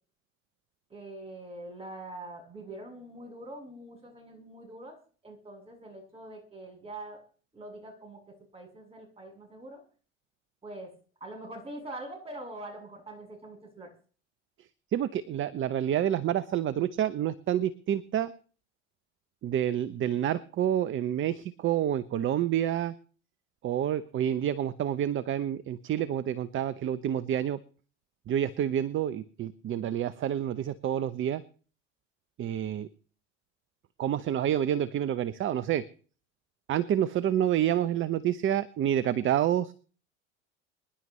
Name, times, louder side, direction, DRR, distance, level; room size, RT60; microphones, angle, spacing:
voice 1, 0.9-5.0 5.2-7.2 7.5-9.8 10.6-10.9 11.2-13.9, right 1 dB, 15° right, 0 dB, 7.4 m, -44 dB
voice 2, 14.9-18.3 19.4-22.9 23.6-27.6 28.3-31.4 32.4-32.9 34.0-35.8 36.7-39.7, right 10 dB, 35° right, 15 dB, 0.8 m, -28 dB
25.0 x 11.0 x 3.1 m, 0.41 s
hypercardioid pair, 90°, 38 cm